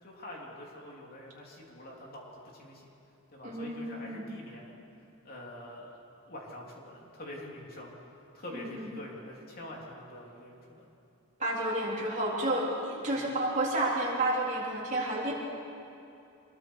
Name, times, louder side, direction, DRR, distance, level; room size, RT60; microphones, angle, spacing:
voice 1, 0.0-2.9 3.3-4.8 5.2-6.0 6.3-8.0 8.3-10.9 13.1-13.3 15.2-15.3, left 1 dB, 40° left, -2 dB, 3.5 m, -46 dB
voice 2, 3.4-4.2 8.5-8.9 11.4-15.3, right 1 dB, 35° right, -4 dB, 3.9 m, -31 dB
26.0 x 21.5 x 4.9 m, 2.6 s
head